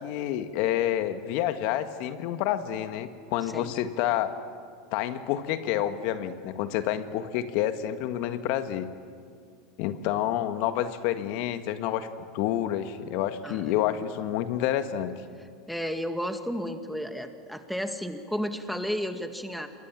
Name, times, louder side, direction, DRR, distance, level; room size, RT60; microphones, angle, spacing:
voice 1, 0.0-4.4 4.9-8.9 9.8-12.1 12.3-15.2, left 11 dB, 60° left, 9 dB, 1.7 m, -28 dB
voice 2, 15.7-19.7, equal, ahead, 6 dB, 2.2 m, -32 dB
27.5 x 23.5 x 7.5 m, 2.1 s
hypercardioid pair, 90°, 2 cm